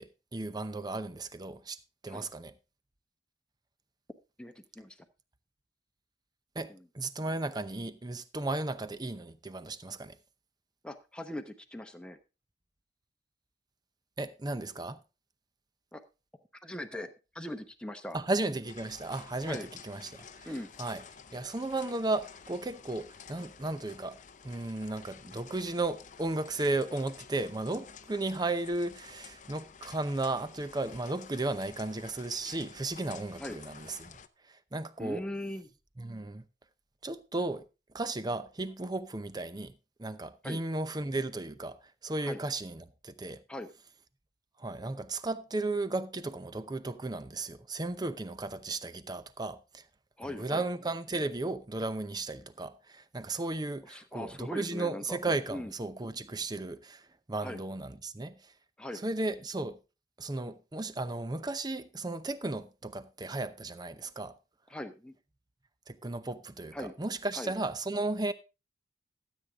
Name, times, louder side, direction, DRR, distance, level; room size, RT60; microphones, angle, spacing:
voice 1, 0.0-1.8 2.0-2.5 6.5-10.2 14.2-15.0 18.1-20.5 20.8-21.0 21.3-24.2 24.4-34.2 34.5-35.2 36.0-36.4 37.0-37.7 37.9-41.8 42.0-43.4 44.6-49.8 50.2-58.5 59.0-59.8 60.2-64.3 65.9-68.3, right 2 dB, 20° right, 0.7 m, -35 dB
voice 2, 4.4-5.0 6.7-6.8 10.8-12.2 15.9-16.0 16.6-18.2 19.5-19.7 20.5-20.7 33.4-33.6 35.0-35.7 40.4-40.6 42.2-42.4 43.5-43.7 50.2-50.6 53.9-55.2 55.5-55.7 57.4-57.6 58.8-59.0 64.7-65.1 66.7-66.9 67.4-67.5, left 1 dB, 5° left, 0.9 m, -40 dB
sound 1, 18.6-34.3, left 6 dB, 40° left, 0.6 m, -51 dB
13.5 x 8.2 x 3.6 m
head